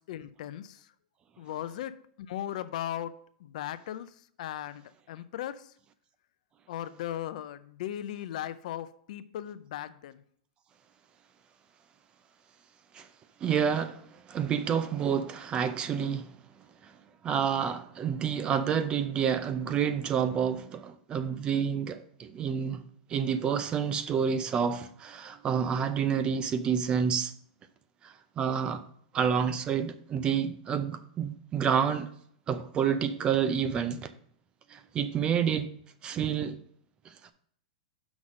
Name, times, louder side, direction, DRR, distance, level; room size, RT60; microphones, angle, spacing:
voice 1, 0.1-0.8 1.4-2.0 2.3-3.1 3.4-4.1 4.4-4.8 5.1-5.6 6.7-10.2, left 11 dB, 65° left, 0.5 m, -37 dB
voice 2, 13.4-14.0 14.3-16.3 17.2-22.8 23.1-27.3 28.4-28.8 29.1-32.1 32.5-34.1 34.7-35.7 36.0-36.6, right 7 dB, 25° right, 0.5 m, -28 dB
6.0 x 4.0 x 6.2 m
supercardioid pair, 145°, 4 cm